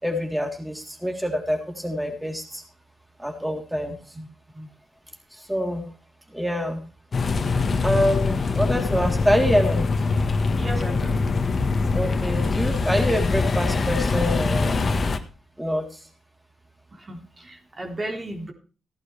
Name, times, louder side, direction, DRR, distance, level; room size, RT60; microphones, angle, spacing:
voice 1, 0.0-2.6 3.2-4.0 5.3-5.9 6.3-6.8 7.8-9.8 11.9-14.8 15.6-16.0, equal, 5° right, 1 dB, 3.7 m, -25 dB
sound 1, 7.1-15.2, left 3 dB, 50° left, 1.5 m, -23 dB
voice 2, 10.6-11.2 16.9-18.5, right 1 dB, 40° right, 1 dB, 3.8 m, -34 dB
15.5 x 11.5 x 3.4 m, 0.37 s
supercardioid pair, 45°, 0 cm